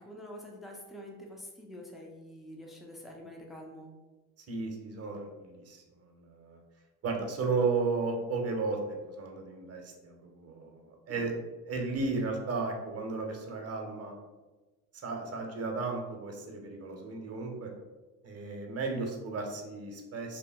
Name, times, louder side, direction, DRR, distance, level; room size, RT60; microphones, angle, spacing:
voice 1, 0.0-3.9 11.1-11.3, left 1 dB, ahead, 0 dB, 0.5 m, -46 dB
voice 2, 4.5-5.8 6.2-6.6 7.0-8.8 9.2-11.3 11.7-14.2 15.0-17.7 18.2-20.4, right 4 dB, 40° right, 2 dB, 0.8 m, -34 dB
2.9 x 2.1 x 3.4 m, 1.2 s
supercardioid pair, 85°, 39 cm